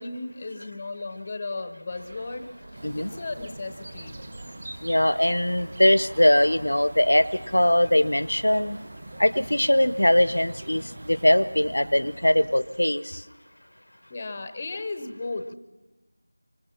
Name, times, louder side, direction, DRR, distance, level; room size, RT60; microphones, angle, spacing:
voice 1, 0.0-2.5 2.9-4.2 14.1-15.5, left 3 dB, 15° left, 9 dB, 0.7 m, -35 dB
sound 1, 1.9-12.7, right 1 dB, 45° right, 1.3 m, -47 dB
sound 2, 2.7-13.1, right 1 dB, 25° right, 1.0 m, -44 dB
voice 2, 4.8-8.8 9.2-13.2, left 1 dB, 80° left, 16 dB, 0.8 m, -21 dB
25.0 x 25.0 x 4.4 m, 1.1 s
figure-of-eight pair, 175°, 0 cm